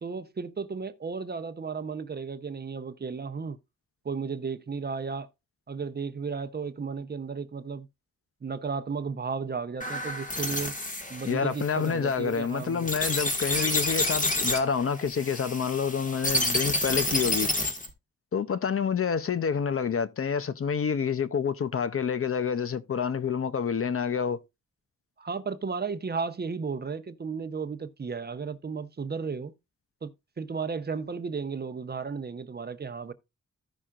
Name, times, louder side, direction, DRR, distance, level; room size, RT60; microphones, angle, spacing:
voice 1, 0.0-3.6 4.0-5.3 5.7-7.9 8.4-10.7 11.1-12.9 25.2-29.5 30.0-30.1 30.4-33.1, right 5 dB, 35° right, 0.7 m, -34 dB
sound 1, 9.8-17.9, left 1 dB, 25° left, 1.6 m, -29 dB
voice 2, 11.3-17.5 18.3-24.4, left 6 dB, 50° left, 0.6 m, -28 dB
15.0 x 5.6 x 2.4 m
wide cardioid pair, 110°, 29 cm